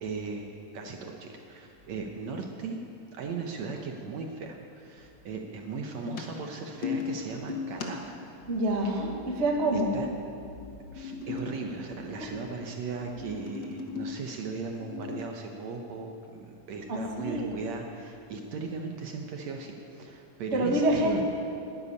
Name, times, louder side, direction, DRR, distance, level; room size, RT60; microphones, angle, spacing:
voice 1, 0.0-2.8 3.1-8.2 8.8-9.0 9.3-9.4 9.7-10.1 10.9-21.2, right 4 dB, 70° right, 2 dB, 1.9 m, -37 dB
sound 1, 6.0-8.3 10.6-12.4 12.9-14.2 14.7-15.2, left 5 dB, 65° left, 1.1 m, -37 dB
voice 2, 8.5-9.9 12.2-12.4 16.9-17.5 20.5-21.2, right 1 dB, 40° right, 0 dB, 0.9 m, -27 dB
12.5 x 10.0 x 9.9 m, 2.6 s
omnidirectional pair, 3.9 m